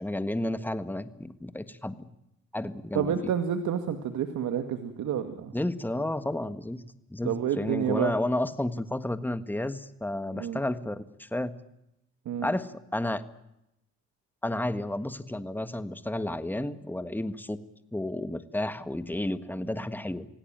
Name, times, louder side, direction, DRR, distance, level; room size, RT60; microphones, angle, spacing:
voice 1, 0.0-2.1 2.5-3.1 5.5-6.8 7.1-11.5 12.4-13.2 14.4-17.6 17.9-20.3, left 1 dB, 5° left, 12 dB, 1.6 m, -31 dB
voice 2, 3.0-5.5 7.2-8.1 10.3-10.6 12.3-12.5, right 8 dB, 75° right, 7 dB, 2.1 m, -29 dB
26.0 x 17.5 x 9.1 m, 0.87 s
cardioid pair, 90°, 30 cm